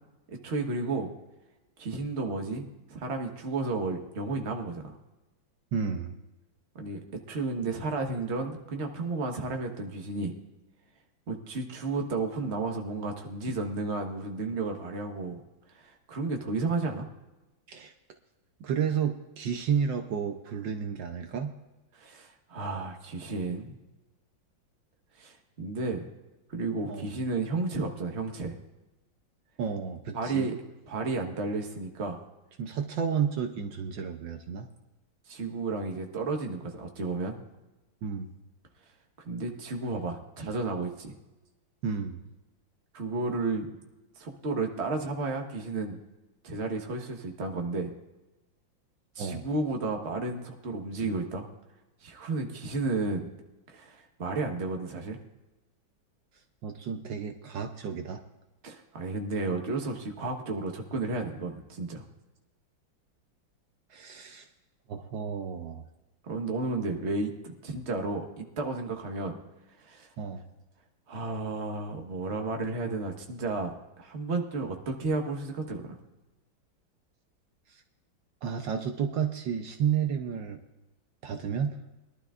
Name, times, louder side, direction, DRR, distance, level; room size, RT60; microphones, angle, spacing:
voice 1, 0.3-1.1 1.8-5.0 6.7-10.3 11.3-15.4 15.7-17.1 21.9-23.8 25.2-26.1 26.5-28.6 30.1-30.5 30.9-32.2 35.3-37.4 39.2-41.2 42.9-43.7 44.2-46.0 46.4-47.9 49.1-51.5 52.0-53.3 53.7-55.2 58.6-62.0 66.2-69.4 69.8-70.1 71.1-76.0, right 3 dB, 40° right, 3 dB, 1.4 m, -32 dB
voice 2, 5.7-6.2 17.7-17.9 18.6-21.5 26.8-27.1 29.6-30.5 32.6-34.7 38.0-38.3 41.8-42.2 49.2-49.5 56.6-58.2 63.9-64.5 64.9-65.8 70.2-70.4 77.7-77.8 78.4-80.6 81.2-81.8, right 7 dB, 70° right, 5 dB, 1.4 m, -31 dB
22.0 x 12.0 x 2.5 m, 1.0 s
omnidirectional pair, 2.1 m